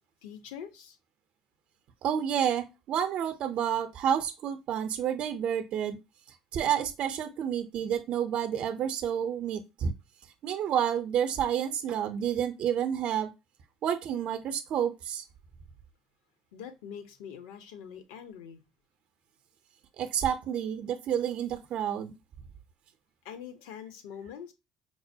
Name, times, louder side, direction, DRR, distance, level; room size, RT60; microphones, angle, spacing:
voice 1, 0.2-1.0 16.5-18.6 23.2-24.5, left 8 dB, 80° left, 0.7 m, -44 dB
voice 2, 2.0-6.0 6.5-9.9 10.4-13.3 13.8-15.2 20.0-22.2, right 9 dB, 60° right, 0.5 m, -29 dB
4.6 x 2.1 x 2.7 m
hypercardioid pair, 70°, 2 cm